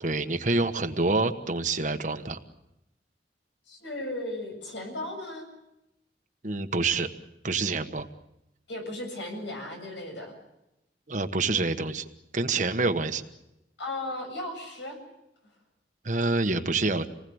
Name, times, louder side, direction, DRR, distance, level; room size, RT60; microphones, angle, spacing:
voice 1, 0.0-2.4 6.4-7.1 7.4-8.1 11.1-12.1 12.3-13.2 16.0-17.1, right 3 dB, 45° right, 8 dB, 1.3 m, -27 dB
voice 2, 3.7-5.5 8.7-10.3 13.8-15.0, left 1 dB, 85° left, 3 dB, 7.7 m, -36 dB
27.5 x 19.5 x 7.9 m, 0.90 s
head